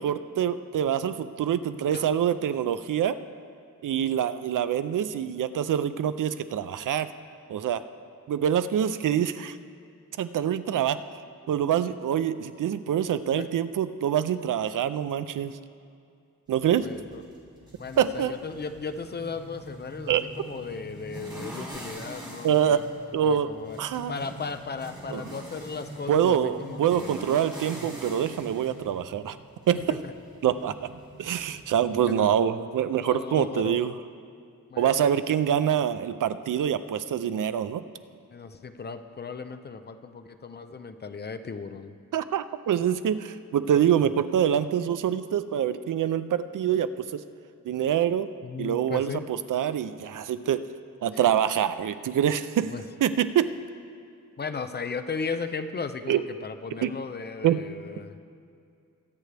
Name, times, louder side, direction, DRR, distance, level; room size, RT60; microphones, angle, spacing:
voice 1, 0.0-3.2 3.8-7.1 7.5-7.8 8.3-9.6 10.2-11.0 11.5-15.5 16.5-16.9 18.0-18.3 20.1-20.2 22.4-22.8 23.1-23.5 23.8-24.1 25.1-25.2 26.1-29.4 29.7-30.0 30.4-30.9 31.2-33.9 34.8-37.8 42.1-47.2 47.6-48.3 48.6-50.6 51.0-52.7 53.0-53.5 56.1-56.2 56.8-56.9 57.4-57.6, right 9 dB, 75° right, 12 dB, 0.5 m, -25 dB
sound 1, 16.5-32.0, right 1 dB, 15° right, 2.4 m, -44 dB
voice 2, 16.8-17.2 17.8-22.8 23.2-23.8 24.1-27.4 29.9-30.1 32.1-32.4 33.0-33.9 34.7-35.1 38.3-41.9 48.4-49.2 52.7-52.8 54.4-58.2, left 5 dB, 30° left, 9 dB, 0.5 m, -36 dB
23.0 x 9.2 x 3.4 m, 2.4 s
wide cardioid pair, 165°, 32 cm